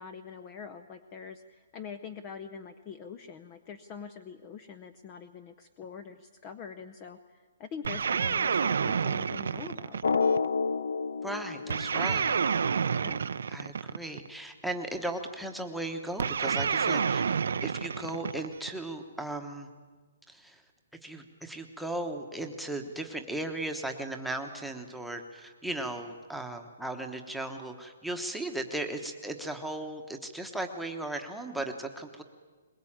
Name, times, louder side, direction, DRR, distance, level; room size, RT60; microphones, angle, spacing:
voice 1, 0.0-10.0 13.0-13.2, left 6 dB, 20° left, 10 dB, 0.6 m, -44 dB
sound 1, 7.8-10.5 11.7-14.3 16.2-18.8, right 6 dB, 75° right, 0.7 m, -29 dB
Drum, 10.0-12.6, left 5 dB, 90° left, 0.8 m, -29 dB
voice 2, 11.2-12.4 13.5-19.7 20.3-20.6 21.0-32.2, right 1 dB, ahead, 3 dB, 1.2 m, -36 dB
22.0 x 21.0 x 8.8 m, 1.4 s
hypercardioid pair, 170°, 0 cm